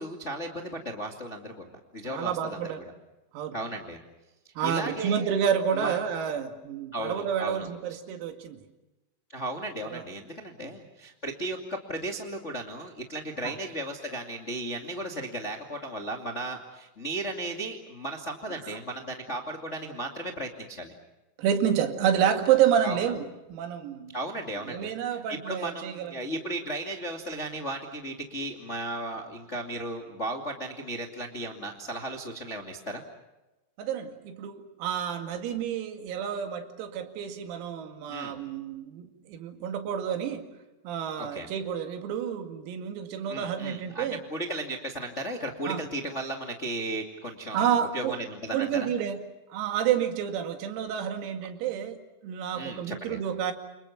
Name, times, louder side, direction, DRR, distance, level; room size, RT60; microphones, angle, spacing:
voice 1, 0.0-1.7 1.9-2.7 3.5-4.0 4.6-5.3 5.7-6.0 6.9-7.7 9.3-20.9 22.8-23.0 24.1-33.0 38.1-38.3 41.2-41.5 43.3-48.9 52.5-53.2, right 1 dB, 40° left, 2 dB, 0.9 m, -35 dB
voice 2, 2.0-2.8 3.3-3.6 4.6-8.6 9.9-10.0 13.4-13.5 18.6-18.8 21.4-24.2 24.7-26.1 33.8-40.5 40.8-44.2 45.7-45.8 47.5-48.2 48.5-49.2 49.5-52.0 52.2-53.5, right 9 dB, 90° right, 5 dB, 5.0 m, -29 dB
29.0 x 28.5 x 5.9 m, 1.0 s
omnidirectional pair, 6.0 m